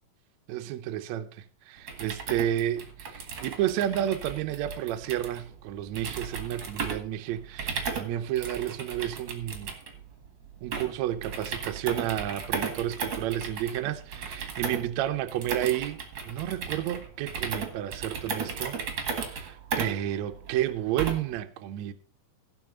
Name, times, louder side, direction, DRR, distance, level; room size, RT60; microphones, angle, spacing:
voice 1, 0.5-1.3 1.7-9.7 10.6-16.0 16.3-18.8 19.2-21.9, right 12 dB, 80° right, 1.6 m, -31 dB
sound 1, 1.8-21.4, right 5 dB, 50° right, 1.5 m, -36 dB
16.0 x 5.5 x 5.1 m
omnidirectional pair, 4.2 m